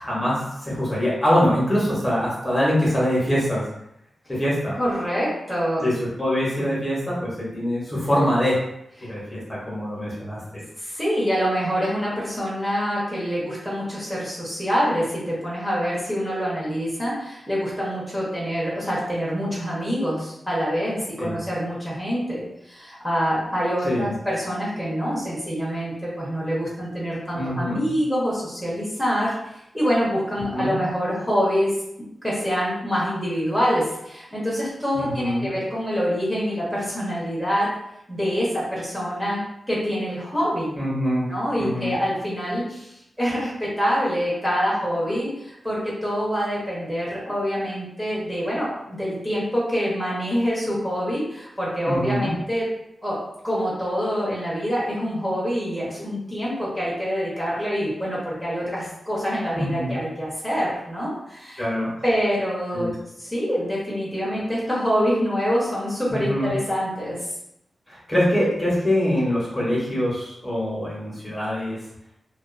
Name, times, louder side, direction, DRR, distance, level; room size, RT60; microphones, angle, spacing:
voice 1, 0.0-3.7 4.3-4.8 5.8-8.6 9.0-10.6 21.2-21.4 23.8-24.1 27.3-27.8 30.5-30.7 34.9-35.5 40.8-41.3 41.6-41.9 51.9-52.3 59.5-60.0 61.6-61.9 62.7-62.9 66.1-66.5 67.9-71.8, equal, 20° left, -7 dB, 0.9 m, -24 dB
voice 2, 4.8-5.8 9.0-9.1 10.8-31.7 32.2-37.7 38.1-40.7 41.3-52.7 53.0-53.2 53.4-61.7 62.0-67.3, equal, 5° right, -8 dB, 0.8 m, -26 dB
2.4 x 2.3 x 2.5 m, 0.81 s
wide cardioid pair, 105°, 0 cm